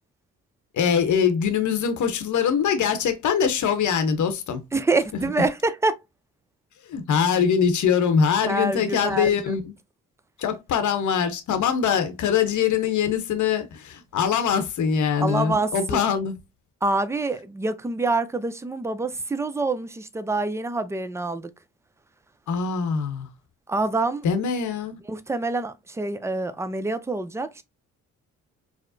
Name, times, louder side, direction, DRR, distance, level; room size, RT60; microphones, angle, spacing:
voice 1, 0.7-4.6 6.9-9.7 10.4-16.3 22.5-23.3 24.2-25.0, left 7 dB, 60° left, 0.9 m, -23 dB
voice 2, 4.7-6.0 8.4-9.6 15.2-16.0 16.8-21.5 23.7-24.3 25.1-27.6, right 2 dB, 10° right, 0.5 m, -26 dB
4.7 x 2.1 x 2.6 m
supercardioid pair, 65°, 33 cm